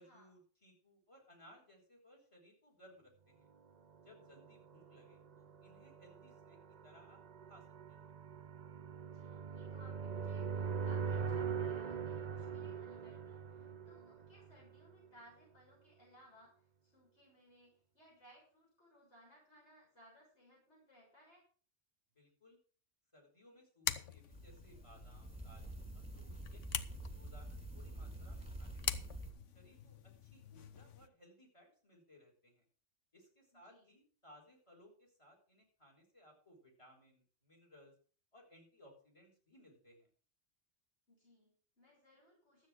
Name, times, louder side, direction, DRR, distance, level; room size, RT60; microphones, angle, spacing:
voice 1, 0.0-3.5 4.0-7.2 7.5-8.1 22.1-22.6 23.1-25.9 26.1-29.0 29.5-32.6 33.1-37.9 38.3-40.1, equal, 25° left, 2 dB, 4.3 m, -63 dB
sound 1, 4.1-14.9, right 6 dB, 45° right, 0.7 m, -42 dB
voice 2, 9.0-21.4 33.5-33.9 41.1-42.7, equal, 65° left, -5 dB, 6.8 m, -64 dB
sound 2, 23.8-31.1, left 8 dB, 85° left, 1.2 m, -45 dB
sound 3, 24.3-29.3, right 1 dB, 5° right, 2.3 m, -48 dB
12.5 x 8.4 x 6.0 m, 0.42 s
omnidirectional pair, 1.2 m